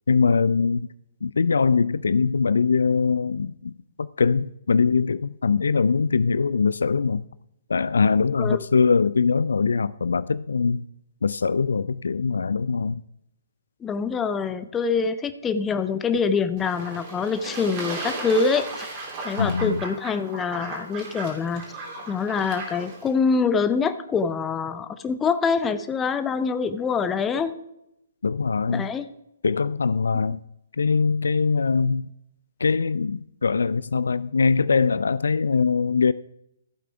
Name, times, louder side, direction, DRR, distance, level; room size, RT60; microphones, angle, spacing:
voice 1, 0.1-0.9 1.2-7.2 7.7-10.8 11.2-13.0 19.4-19.8 28.2-28.9 29.4-30.4 30.8-32.1 32.6-36.1, left 5 dB, 65° left, 0.3 m, -22 dB
voice 2, 13.8-18.7 19.2-21.6 22.1-27.5 28.7-29.1, left 5 dB, 15° left, 0.6 m, -25 dB
Fowl / Bird / Water, 16.6-23.1, right 3 dB, 30° right, 3.0 m, -36 dB
15.0 x 8.2 x 3.5 m
figure-of-eight pair, 130°, 0 cm